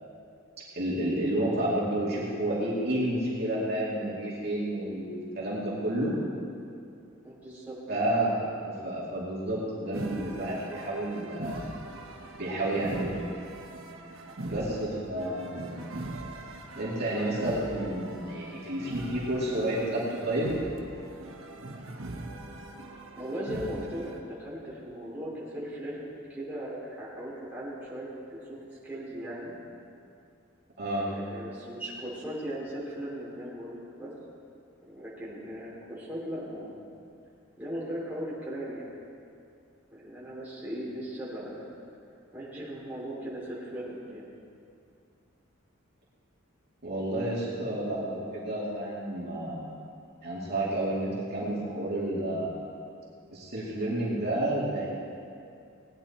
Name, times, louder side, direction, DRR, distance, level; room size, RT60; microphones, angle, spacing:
voice 1, 0.7-6.1 7.9-8.4 8.6-11.7 12.3-13.2 14.4-15.8 16.8-20.5 30.8-31.1 46.8-49.8 50.2-52.5 53.3-54.9, right 1 dB, 50° right, -6 dB, 2.4 m, -30 dB
voice 2, 7.2-7.8 14.5-14.7 15.2-15.4 23.1-28.6 28.8-29.5 30.9-34.1 34.8-36.8 37.6-38.9 39.9-41.7 42.3-44.3, equal, 5° right, -8 dB, 3.1 m, -38 dB
sound 1, 9.9-24.2, right 1 dB, 70° right, 1.1 m, -41 dB
18.5 x 9.6 x 4.3 m, 2.5 s
head